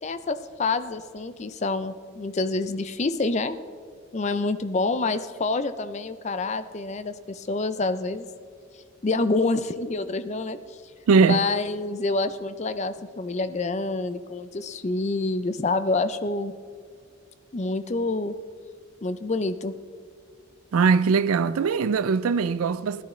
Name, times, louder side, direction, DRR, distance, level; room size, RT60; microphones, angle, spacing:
voice 1, 0.0-3.6 4.1-8.3 9.0-10.8 11.2-16.5 17.5-18.3 19.0-19.7, left 3 dB, 30° left, 0.4 m, -27 dB
voice 2, 11.1-11.4 20.7-23.0, right 5 dB, 85° right, 0.4 m, -21 dB
16.5 x 11.0 x 3.2 m
head